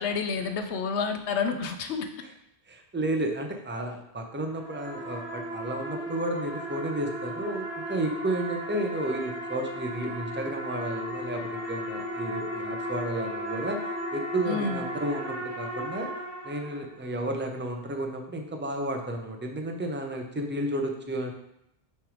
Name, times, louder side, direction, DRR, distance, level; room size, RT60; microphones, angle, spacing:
voice 1, 0.0-2.1 14.5-14.8, left 5 dB, 90° left, 6 dB, 1.0 m, -29 dB
voice 2, 2.7-13.8 14.1-16.1 16.4-21.3, right 1 dB, 15° right, 3 dB, 0.5 m, -32 dB
sound 1, 4.3-17.1, equal, 45° left, 2.8 m, -35 dB
6.0 x 3.3 x 5.0 m, 0.80 s
omnidirectional pair, 1.1 m